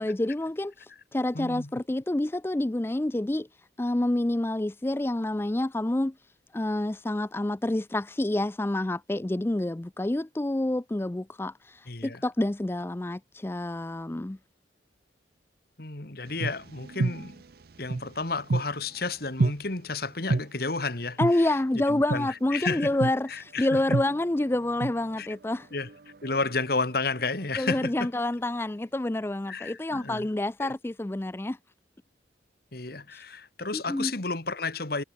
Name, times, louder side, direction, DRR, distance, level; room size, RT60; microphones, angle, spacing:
voice 1, 0.0-3.5 3.8-6.1 6.5-14.4 21.2-25.7 27.6-31.6 33.1-33.2 33.7-34.1, left 1 dB, 15° left, 0.4 m, -28 dB
voice 2, 1.3-1.7 11.9-12.2 15.8-17.4 17.8-23.0 23.3-23.8 25.2-25.3 25.7-25.9 26.2-28.1 29.5-30.3 30.6-30.7 32.7-35.0, left 3 dB, 55° left, 2.0 m, -32 dB
sound 1, 16.3-19.0 19.4-19.5 20.3-20.4 21.2-21.3 22.1-22.2 23.0-23.1 23.9-25.5 25.8-27.4, right 3 dB, 55° right, 0.6 m, -29 dB
head